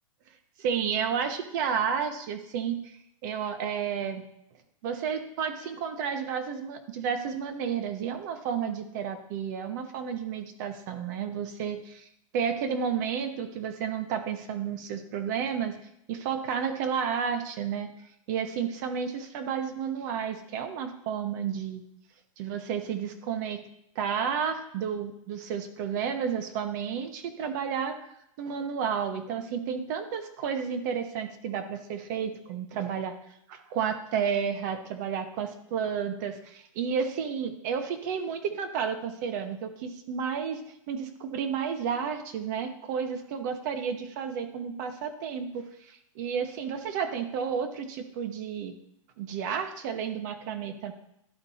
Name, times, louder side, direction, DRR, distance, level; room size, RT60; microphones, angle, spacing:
voice 1, 0.6-4.2 4.8-12.1 12.3-15.8 16.1-17.9 18.3-21.8 22.4-23.6 24.0-28.0 28.4-33.1 33.5-40.6 40.9-48.7 49.2-50.9, right 7 dB, 35° right, 8 dB, 0.8 m, -31 dB
12.5 x 4.3 x 2.7 m, 0.78 s
hypercardioid pair, 170°, 17 cm